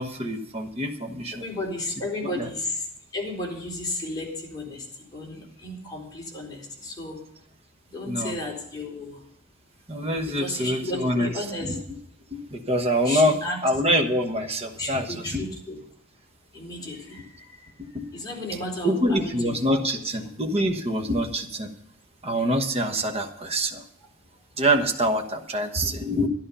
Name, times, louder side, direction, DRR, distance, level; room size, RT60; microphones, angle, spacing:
voice 1, 0.0-1.4 2.2-2.5 8.1-8.3 9.9-11.3 12.3-13.4 13.6-15.4 17.8-18.1 18.8-21.7 22.2-23.8 24.6-26.3, equal, 30° right, 4 dB, 1.2 m, -25 dB
voice 2, 1.4-2.8 3.1-4.8 5.1-7.2 7.9-9.2 10.2-11.7 13.0-13.6 14.8-15.8 16.5-17.3 18.1-19.8 20.2-20.3, left 2 dB, 20° left, -2 dB, 4.1 m, -33 dB
12.0 x 11.5 x 5.5 m, 0.72 s
head